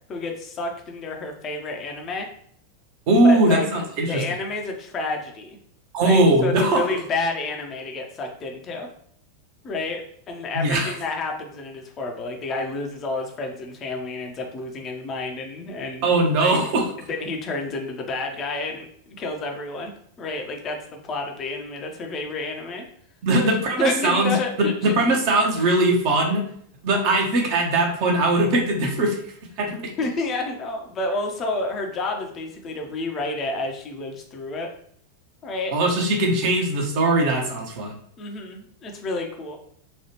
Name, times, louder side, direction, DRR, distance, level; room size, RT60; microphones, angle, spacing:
voice 1, 0.1-2.3 3.2-5.6 6.0-8.9 9.6-16.1 16.4-16.6 17.0-19.9 20.2-22.8 23.4-23.5 23.8-24.9 25.6-25.7 30.0-34.7 35.4-35.7 38.2-39.6, left 3 dB, 30° left, 2 dB, 0.6 m, -30 dB
voice 2, 3.1-4.2 5.9-6.8 10.5-10.9 16.0-16.9 23.2-24.3 24.6-26.4 26.8-29.2 29.6-29.8 35.7-37.9, right 2 dB, 45° right, 1 dB, 0.8 m, -20 dB
3.0 x 2.3 x 2.9 m, 0.63 s
figure-of-eight pair, 90°, 0 cm